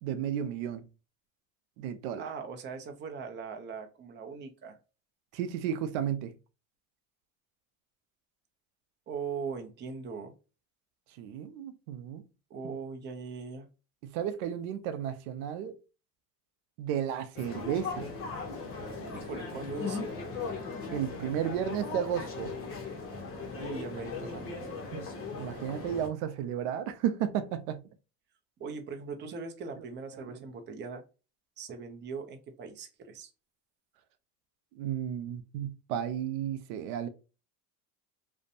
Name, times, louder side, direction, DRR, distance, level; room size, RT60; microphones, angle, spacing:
voice 1, 0.0-0.9 1.8-2.2 5.3-6.3 11.2-12.2 12.6-12.7 14.0-15.8 16.8-18.1 20.9-22.5 24.9-25.0 25.4-27.8 29.8-29.9 30.1-30.2 34.7-37.1, right 9 dB, 90° right, 0.5 m, -33 dB
voice 2, 2.2-4.8 9.1-10.3 12.5-13.7 19.1-20.0 23.6-24.5 28.6-31.0 31.6-33.3, right 5 dB, 30° right, 0.5 m, -40 dB
sound 1, 17.3-26.1, left 4 dB, 35° left, 0.8 m, -38 dB
2.5 x 2.1 x 2.6 m
supercardioid pair, 115°, 40 cm